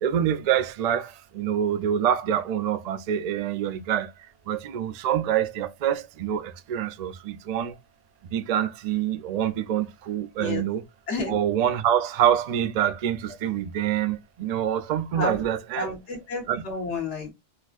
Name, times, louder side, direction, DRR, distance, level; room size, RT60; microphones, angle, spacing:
voice 1, 0.0-4.1 4.5-7.8 8.3-10.8 11.3-15.9 16.5-16.6, right 10 dB, 85° right, 0.3 m, -26 dB
voice 2, 11.1-11.4 15.1-15.4 15.7-17.3, left 3 dB, 70° left, 1.5 m, -31 dB
4.1 x 2.5 x 2.4 m
omnidirectional pair, 1.2 m